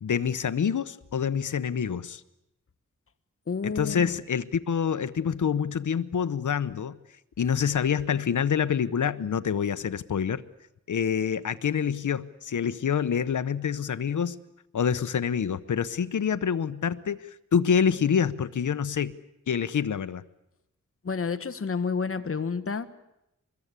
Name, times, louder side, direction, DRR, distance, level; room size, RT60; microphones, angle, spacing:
voice 1, 0.0-2.2 3.6-7.0 7.4-10.4 10.9-14.4 14.7-19.1 19.5-20.2, left 7 dB, 75° left, 12 dB, 0.9 m, -26 dB
voice 2, 3.5-4.1 21.0-22.9, left 5 dB, 45° left, 10 dB, 1.3 m, -30 dB
24.5 x 21.5 x 8.3 m, 0.86 s
wide cardioid pair, 130°, 30 cm